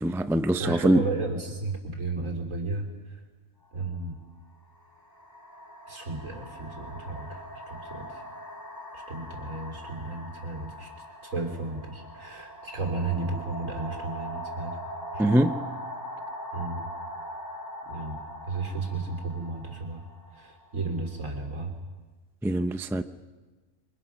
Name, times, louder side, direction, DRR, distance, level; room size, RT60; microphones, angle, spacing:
voice 1, 0.0-1.0 15.2-15.6 22.4-23.0, right 1 dB, 5° right, 0.3 m, -23 dB
voice 2, 0.6-3.2 3.7-4.2 5.9-8.2 8.9-10.9 11.2-14.8 15.1-15.3 16.5-16.9 17.9-18.2 18.5-20.0 20.3-21.7, right 3 dB, 70° right, 3.9 m, -34 dB
sound 1, 3.6-3.8 4.8-21.4, equal, 15° left, 3.1 m, -41 dB
29.5 x 24.0 x 6.1 m
omnidirectional pair, 1.4 m